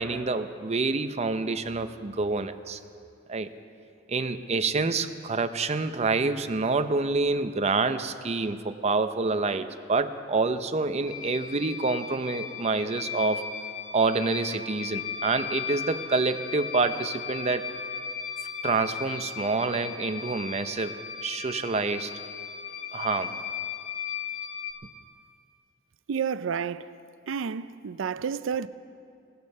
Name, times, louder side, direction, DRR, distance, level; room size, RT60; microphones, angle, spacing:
voice 1, 0.0-2.8 3.3-3.5 4.1-13.4 13.9-17.7 18.6-20.9 21.2-22.1 22.9-23.4, right 3 dB, 35° right, 0.6 m, -27 dB
sound 1, 11.1-24.7, left 7 dB, 45° left, 1.2 m, -37 dB
voice 2, 26.1-27.0 27.3-28.7, right 6 dB, 90° right, 0.4 m, -31 dB
17.5 x 13.5 x 5.4 m
head